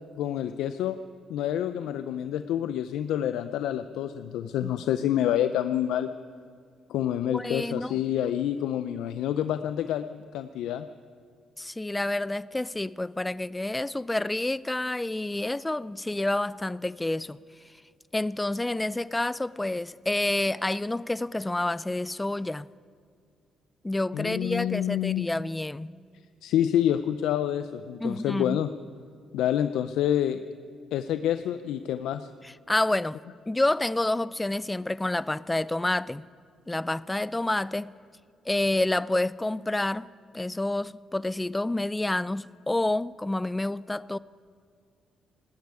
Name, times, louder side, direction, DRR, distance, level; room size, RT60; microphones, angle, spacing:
voice 1, 0.2-1.0 1.3-6.1 6.9-10.9 24.1-25.3 26.4-28.7 29.3-30.4 30.9-32.3, left 11 dB, 85° left, 0.4 m, -27 dB
voice 2, 7.3-8.0 11.6-17.4 18.1-22.7 23.8-25.9 28.0-28.6 32.4-33.2 33.5-36.3 36.7-37.9 38.5-40.1 40.3-44.2, left 2 dB, 15° left, 0.4 m, -28 dB
18.0 x 8.2 x 9.6 m
cardioid pair, 90°, 0 cm